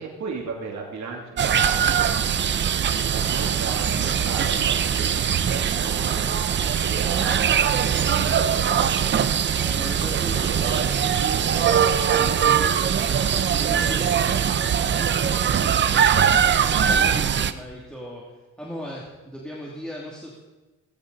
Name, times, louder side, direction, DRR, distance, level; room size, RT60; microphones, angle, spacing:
voice 1, 0.0-6.3 6.8-10.9 11.1-12.9, right 5 dB, 60° right, -1 dB, 2.7 m, -36 dB
sound 1, 1.4-17.5, right 8 dB, 35° right, 0.6 m, -21 dB
voice 2, 9.6-11.0 13.3-16.3 16.8-18.2 18.6-20.4, equal, 5° left, -5 dB, 2.6 m, -38 dB
17.5 x 17.0 x 4.0 m, 1.2 s
cardioid pair, 170°, 32 cm